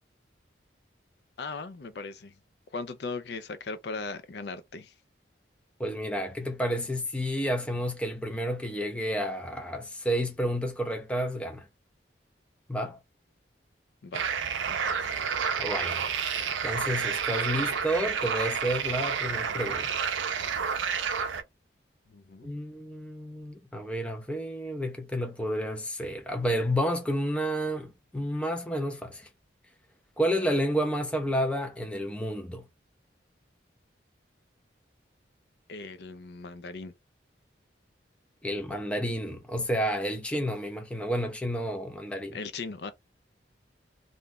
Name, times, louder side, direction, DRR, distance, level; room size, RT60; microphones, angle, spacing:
voice 1, 1.4-2.3 2.7-4.9 14.0-14.3 14.7-15.2 22.1-22.5 35.7-36.9 42.3-42.9, left 4 dB, 60° left, 0.4 m, -38 dB
voice 2, 5.8-11.7 12.7-13.0 15.6-16.0 16.6-19.9 22.4-29.3 30.2-32.7 38.4-42.4, equal, 5° left, 0.5 m, -30 dB
sound 1, 14.1-21.4, right 7 dB, 85° right, 0.5 m, -30 dB
2.6 x 2.3 x 3.6 m
head